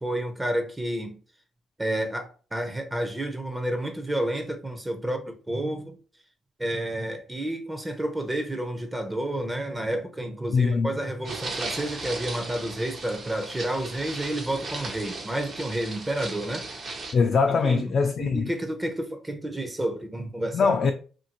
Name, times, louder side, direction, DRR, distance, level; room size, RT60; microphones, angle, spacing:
voice 1, 0.0-1.2 1.8-5.9 6.6-17.0 17.6-20.7, right 1 dB, 15° right, 0.6 m, -30 dB
voice 2, 10.5-11.0 17.1-18.5 20.5-20.9, left 5 dB, 50° left, 0.3 m, -22 dB
sound 1, 11.3-17.1, right 3 dB, 45° right, 0.8 m, -36 dB
2.7 x 2.6 x 2.8 m
cardioid pair, 90°, 0 cm